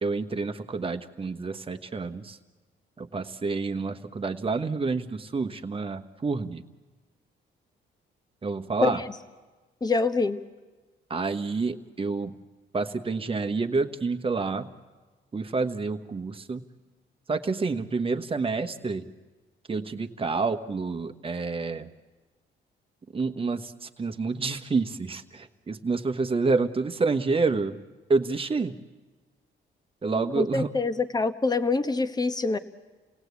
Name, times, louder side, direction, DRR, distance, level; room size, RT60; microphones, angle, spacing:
voice 1, 0.0-2.4 3.0-6.6 8.4-9.0 11.1-12.4 12.7-14.7 15.3-16.6 17.3-19.0 19.7-21.9 23.1-27.8 28.1-28.8 30.0-30.8, right 4 dB, 30° right, 7 dB, 1.2 m, -28 dB
voice 2, 8.8-9.1 9.8-10.4 30.3-32.6, left 3 dB, 20° left, 9 dB, 1.1 m, -25 dB
29.0 x 18.0 x 8.3 m, 1.3 s
cardioid pair, 90°, 20 cm